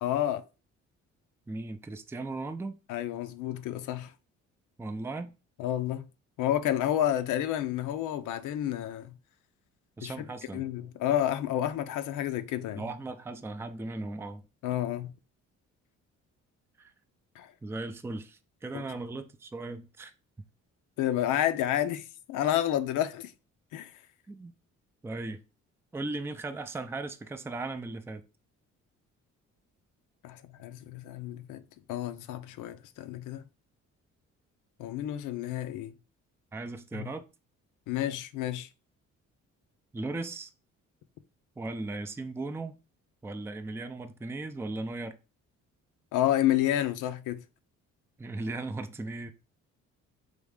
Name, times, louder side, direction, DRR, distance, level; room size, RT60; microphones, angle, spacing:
voice 1, 0.0-0.4 2.9-4.1 5.6-6.1 6.4-9.2 10.0-10.3 10.5-12.9 14.6-15.1 17.4-17.5 18.7-18.8 21.0-23.3 23.7-23.9 30.2-31.6 31.9-33.4 34.8-35.9 36.9-37.1 37.9-38.7 46.1-47.4, left 12 dB, 90° left, 0.5 m, -30 dB
voice 2, 1.5-2.8 4.8-5.3 10.0-10.6 12.8-14.4 16.8-16.9 17.6-20.1 24.3-24.5 25.0-25.4 25.9-28.2 36.5-37.2 39.9-40.5 41.6-42.8 43.2-45.2 48.2-49.3, right 2 dB, 10° right, 0.4 m, -37 dB
3.5 x 3.2 x 3.6 m
cardioid pair, 90°, 30 cm